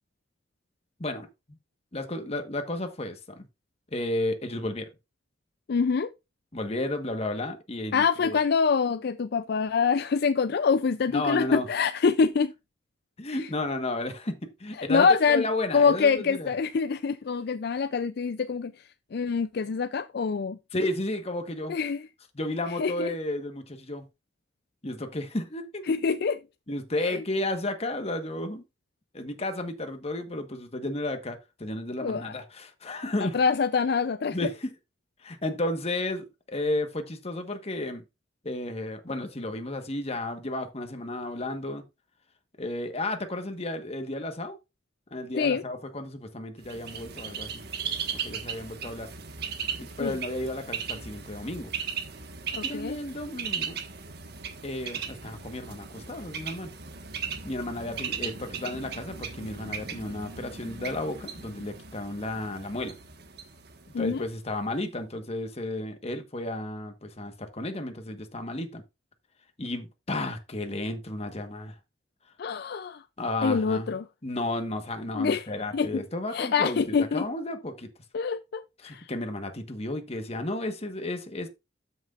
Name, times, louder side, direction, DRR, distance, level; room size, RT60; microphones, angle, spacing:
voice 1, 1.9-3.5 3.9-4.9 6.5-8.4 11.1-11.7 13.2-16.5 20.7-21.8 22.3-24.1 24.8-25.9 26.7-28.6 29.1-33.4 34.3-34.7 35.2-38.0 38.4-41.8 42.6-44.6 45.1-47.6 48.2-49.1 49.8-51.7 52.6-53.8 54.6-56.7 57.4-62.9 64.0-68.8 69.6-71.7 73.2-73.9 74.2-77.9 78.8-81.5, left 1 dB, 35° left, 1.3 m, -33 dB
voice 2, 5.7-6.1 7.9-12.5 13.3-13.5 14.9-15.4 15.7-20.6 21.7-22.0 22.7-23.1 25.9-26.4 27.0-27.2 32.0-32.3 33.2-34.5 45.4-45.6 50.0-50.2 52.5-53.0 63.9-64.3 72.4-73.0 73.4-74.0 75.1-75.5 75.7-76.0 76.3-77.3 78.1-79.1, left 5 dB, 60° left, 0.4 m, -25 dB
Bird, 46.6-64.4, right 7 dB, 60° right, 1.5 m, -37 dB
13.0 x 6.2 x 2.5 m
head